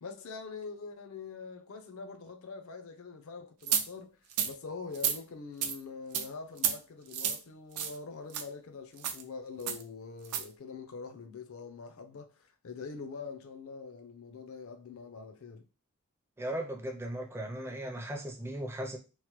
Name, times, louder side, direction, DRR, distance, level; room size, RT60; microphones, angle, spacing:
voice 1, 0.0-15.6, left 4 dB, 65° left, 0.4 m, -44 dB
sound 1, 3.7-3.8 4.3-4.5 4.9-5.2 5.6-5.8 6.1-6.3 6.6-6.8 7.1-7.4 7.8-8.0 8.3-8.4 9.0-9.2 9.7-9.8 10.2-10.4, right 8 dB, 85° right, 0.4 m, -30 dB
voice 2, 16.4-19.0, right 1 dB, 10° right, 0.4 m, -37 dB
3.0 x 2.0 x 3.0 m
head